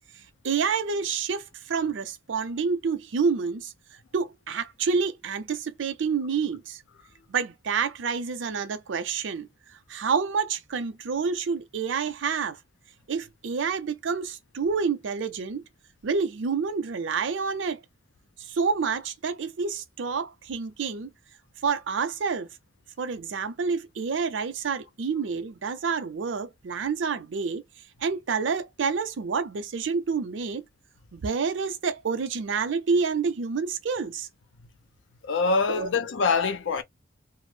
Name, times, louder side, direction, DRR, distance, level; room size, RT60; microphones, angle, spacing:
voice 1, 0.4-3.7 4.1-6.8 7.3-9.5 9.9-12.6 13.1-15.6 16.0-17.8 18.5-21.1 21.6-22.5 23.0-27.6 28.0-30.6 31.1-34.3 35.7-35.9, right 5 dB, 85° right, 0.5 m, -28 dB
voice 2, 35.2-36.8, left 4 dB, 85° left, 0.5 m, -24 dB
2.3 x 2.0 x 3.1 m
head